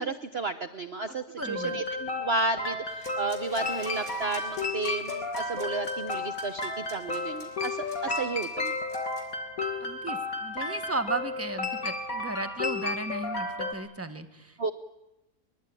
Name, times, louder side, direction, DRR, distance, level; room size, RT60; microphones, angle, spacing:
voice 1, 0.0-8.7 14.6-14.7, right 3 dB, 45° right, 9 dB, 1.2 m, -32 dB
voice 2, 1.3-1.8 9.8-14.6, right 2 dB, 10° right, 9 dB, 1.7 m, -35 dB
sound 1, 1.4-13.7, left 2 dB, 60° left, 3.1 m, -33 dB
sound 2, 2.9-9.4, left 1 dB, 35° left, 4.7 m, -48 dB
23.5 x 22.5 x 9.9 m, 0.92 s
omnidirectional pair, 1.7 m